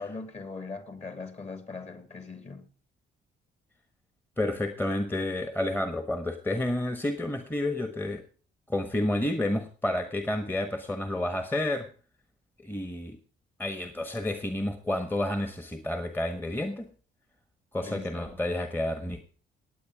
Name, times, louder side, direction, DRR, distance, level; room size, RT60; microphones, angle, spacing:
voice 1, 0.0-2.6 17.8-18.3, left 4 dB, 35° left, 2.6 m, -40 dB
voice 2, 4.4-8.2 8.7-11.9 12.6-13.2 13.6-16.9 17.7-19.2, left 1 dB, 10° left, 1.3 m, -30 dB
18.5 x 8.3 x 4.8 m
cardioid pair, 90°, 20 cm